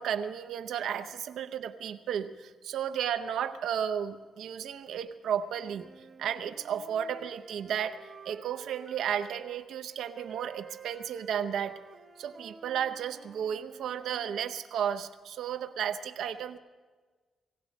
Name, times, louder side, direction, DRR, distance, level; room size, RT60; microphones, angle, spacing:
voice 1, 0.0-11.8 12.2-16.6, right 8 dB, 85° right, 10 dB, 0.7 m, -33 dB
sound 1, 5.5-9.6 10.1-14.4, right 5 dB, 30° right, 0.7 m, -51 dB
18.0 x 17.0 x 4.1 m, 1.4 s
wide cardioid pair, 170°, 0 cm